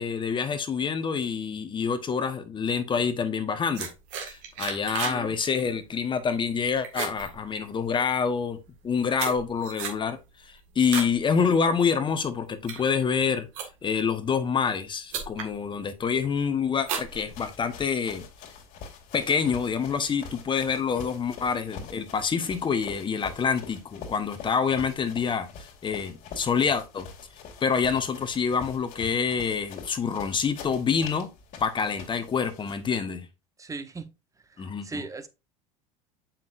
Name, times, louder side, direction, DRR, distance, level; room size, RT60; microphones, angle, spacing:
voice 1, 0.0-3.9 4.2-8.6 8.8-10.2 10.7-13.5 13.8-18.3 19.1-27.1 27.6-31.3 31.6-33.3 34.6-35.0, left 6 dB, 25° left, 1.2 m, -27 dB
sound 1, 3.8-5.2 5.5-5.9 6.3-6.6 6.8-8.0 8.7-11.2 11.6-11.9 12.4-14.0 14.7-14.8 15.1-15.5 16.0-16.4 16.8-17.8, right 7 dB, 65° right, 1.9 m, -35 dB
voice 2, 5.0-5.4 33.6-34.1 34.8-35.3, right 3 dB, 20° right, 1.0 m, -37 dB
sound 2, 16.9-32.9, left 5 dB, 50° left, 2.5 m, -45 dB
7.4 x 5.9 x 2.6 m
hypercardioid pair, 80°, 18 cm